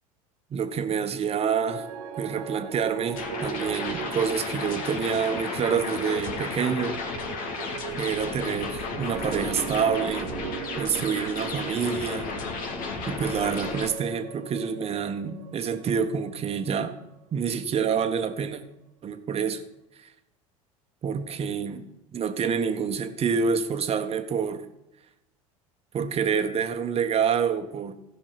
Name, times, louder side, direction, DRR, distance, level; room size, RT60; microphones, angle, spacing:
voice 1, 0.5-1.9 2.2-7.0 8.0-10.4 10.8-12.3 13.1-17.0 17.3-18.6 19.0-19.6 20.0-20.1 21.0-21.9 22.1-24.6 25.9-27.9, right 6 dB, 35° right, 8 dB, 1.4 m, -27 dB
sound 1, 1.5-17.8, right 9 dB, 70° right, 1.3 m, -39 dB
sound 2, 3.1-13.9, left 4 dB, 50° left, 2.0 m, -33 dB
16.0 x 5.5 x 5.9 m, 0.89 s
hypercardioid pair, 80°, 18 cm